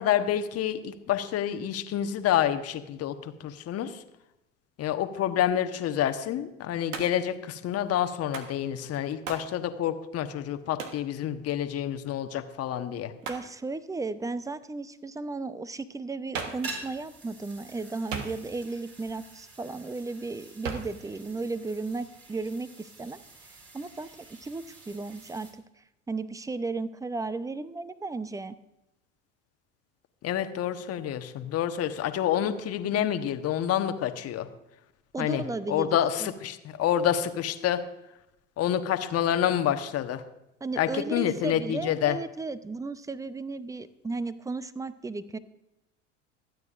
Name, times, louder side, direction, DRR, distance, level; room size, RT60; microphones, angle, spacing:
voice 1, 0.0-3.9 4.8-13.1 30.2-34.5 35.2-37.8 38.6-40.2 40.8-42.2, left 10 dB, 40° left, 8 dB, 1.1 m, -28 dB
Hands, 6.9-7.3 8.3-8.6 9.3-9.5 10.8-11.1 13.2-13.5 16.3-16.7 18.1-18.7 20.6-21.0, right 5 dB, 80° right, 1.4 m, -36 dB
voice 2, 13.3-28.6 35.1-36.3 40.6-45.4, right 3 dB, 10° right, 14 dB, 0.7 m, -35 dB
sound 1, 16.5-25.5, right 3 dB, 35° right, 4.4 m, -47 dB
25.5 x 9.4 x 2.5 m, 0.90 s
hypercardioid pair, 75°, 38 cm